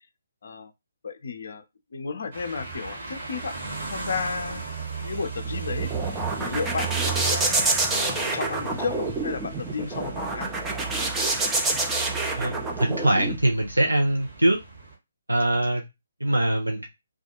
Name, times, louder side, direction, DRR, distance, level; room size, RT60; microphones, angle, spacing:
voice 1, 1.0-1.6 1.9-4.6 5.0-5.9 6.4-7.9 8.1-10.5, left 5 dB, 50° left, 0.5 m, -33 dB
sound 1, 2.3-14.9, right 6 dB, 45° right, 1.3 m, -36 dB
sound 2, 5.5-13.4, right 2 dB, 10° right, 0.4 m, -27 dB
voice 2, 12.4-14.6 15.3-15.8 16.2-16.9, right 1 dB, 80° right, 0.5 m, -23 dB
2.4 x 2.2 x 2.8 m
figure-of-eight pair, 135°, 0 cm